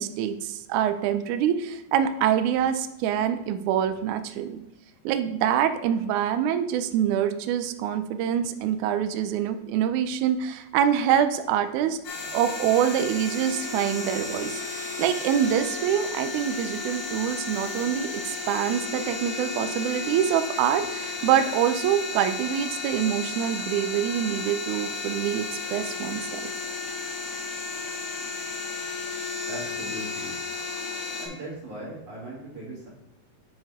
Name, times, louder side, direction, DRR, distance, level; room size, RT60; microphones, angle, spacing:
voice 1, 0.0-4.6 5.0-12.0 12.3-26.5, right 9 dB, 85° right, 9 dB, 1.7 m, -25 dB
sound 1, 12.0-31.3, left 4 dB, 50° left, 2.4 m, -33 dB
voice 2, 29.5-30.3 31.2-32.9, right 1 dB, 35° right, -6 dB, 2.3 m, -38 dB
8.9 x 5.3 x 3.6 m, 0.92 s
omnidirectional pair, 4.1 m